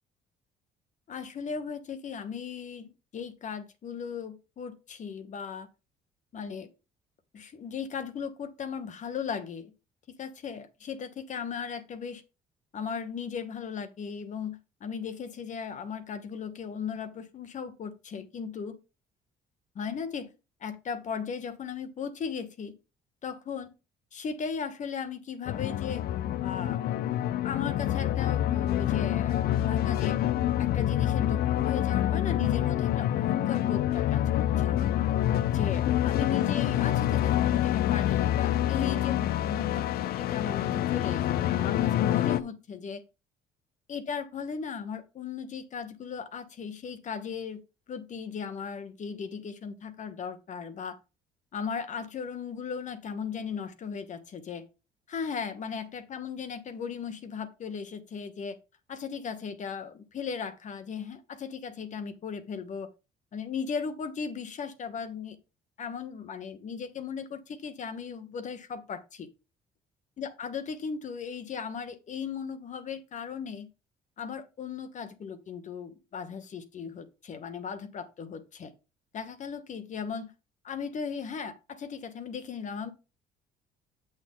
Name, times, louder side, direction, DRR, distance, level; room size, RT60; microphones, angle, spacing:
voice 1, 1.1-5.7 6.3-6.7 7.3-9.7 10.2-12.2 12.7-18.8 19.7-20.3 20.6-22.7 23.2-23.7 24.1-26.0 26.4-26.8 27.4-30.2 30.6-34.9 35.5-43.0 43.9-47.6 47.9-51.0 51.5-54.6 55.1-58.6 58.9-62.9 63.3-65.4 65.8-69.3 70.2-73.7 74.2-78.7 79.1-80.3 80.6-82.9, left 6 dB, 45° left, 1.2 m, -37 dB
sound 1, 25.5-42.4, left 12 dB, 65° left, 0.6 m, -27 dB
7.8 x 6.6 x 3.7 m
cardioid pair, 110°, 17 cm